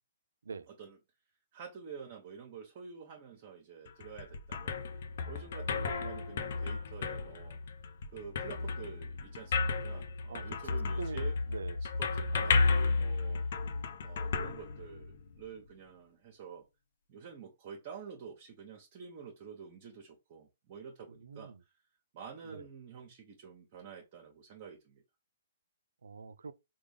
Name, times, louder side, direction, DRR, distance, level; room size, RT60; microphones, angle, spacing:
voice 1, 0.7-1.0 1.5-4.8 5.2-7.6 8.1-11.4 11.8-13.5 14.0-16.7 17.1-21.7 22.1-25.0, right 6 dB, 45° right, 0.9 m, -48 dB
sound 1, 3.9-15.3, left 4 dB, 60° left, 0.6 m, -33 dB
voice 2, 5.7-6.0 10.3-11.8 21.1-21.6 22.5-22.7 26.0-26.5, right 5 dB, 80° right, 0.3 m, -44 dB
3.6 x 2.3 x 3.4 m
hypercardioid pair, 135°, 0 cm